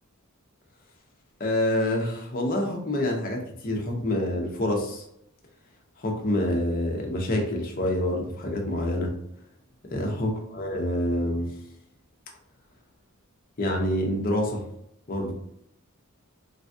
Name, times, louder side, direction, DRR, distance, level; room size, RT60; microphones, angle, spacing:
voice 1, 1.4-5.0 6.0-9.1 9.9-11.5 13.6-14.6 15.1-15.3, left 1 dB, 40° left, 1 dB, 0.6 m, -27 dB
3.3 x 2.3 x 2.6 m, 0.74 s
head